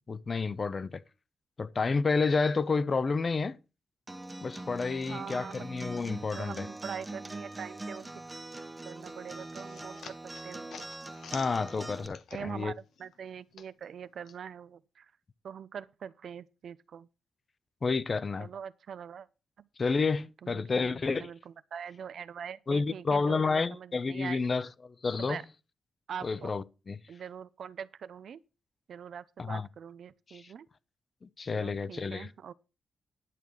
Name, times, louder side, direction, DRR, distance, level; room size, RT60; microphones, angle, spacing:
voice 1, 0.1-1.0 1.6-3.6 4.4-6.7 11.3-12.7 17.8-18.5 19.8-21.3 22.7-25.4 26.2-27.0 29.4-29.7 30.3-30.4 31.2-32.3, left 4 dB, 35° left, 0.6 m, -30 dB
Acoustic guitar, 4.1-12.1, right 2 dB, 15° right, 0.7 m, -43 dB
voice 2, 5.1-5.7 6.3-8.1 8.8-10.2 10.4-10.9 12.3-15.1 15.4-17.1 18.4-19.3 19.6-19.7 20.4-24.4 25.2-25.4 26.1-26.5 27.1-28.4 28.9-30.7 31.5-32.5, right 8 dB, 60° right, 0.5 m, -43 dB
sound 1, 9.0-12.7 13.0-14.4, left 7 dB, 75° left, 1.0 m, -49 dB
11.0 x 4.7 x 6.9 m
wide cardioid pair, 140°, 0 cm